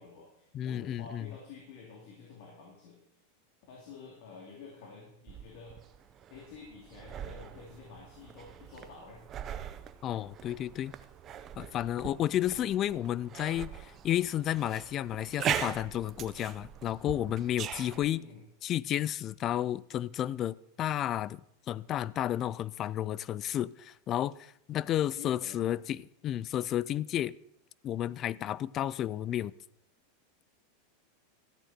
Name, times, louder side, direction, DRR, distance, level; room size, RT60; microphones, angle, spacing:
voice 1, 0.0-3.0 3.7-5.8 6.3-9.2 12.5-12.7 17.9-18.4 25.1-25.7, left 4 dB, 60° left, 3.0 m, -50 dB
voice 2, 0.5-1.3 10.0-10.9 11.6-18.2 18.6-21.4 21.7-27.4 27.8-29.5, left 12 dB, 30° left, 0.3 m, -32 dB
sound 1, 5.3-18.1, right 9 dB, 30° right, 0.7 m, -41 dB
13.5 x 8.8 x 4.4 m
supercardioid pair, 140°, 0 cm